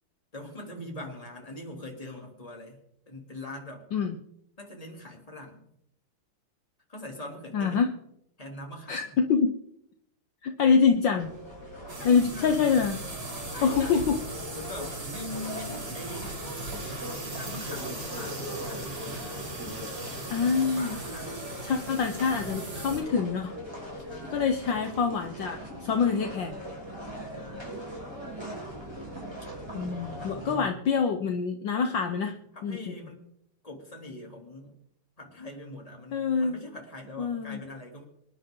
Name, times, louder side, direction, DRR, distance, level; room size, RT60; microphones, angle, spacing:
voice 1, 0.3-2.8 3.1-3.9 4.6-5.7 6.9-7.8 8.4-9.2 12.0-12.6 13.5-14.1 14.5-16.4 17.3-19.3 20.3-21.4 24.0-24.5 27.3-27.9 29.4-29.5 30.1-30.8 31.8-32.1 32.5-33.2 33.6-34.8 35.2-38.0, left 1 dB, 15° left, 0 dB, 3.0 m, -42 dB
voice 2, 7.5-7.9 8.9-9.5 10.4-11.3 12.0-13.0 13.6-14.0 20.3-21.0 21.6-23.5 24.3-26.6 29.7-32.3 32.6-33.0 36.1-36.6 37.2-37.6, left 6 dB, 65° left, 5 dB, 1.6 m, -25 dB
sound 1, 11.2-30.6, equal, 10° right, 5.0 m, -40 dB
sound 2, 11.9-23.0, right 2 dB, 60° right, 3.8 m, -39 dB
26.0 x 10.5 x 3.8 m, 0.75 s
omnidirectional pair, 2.4 m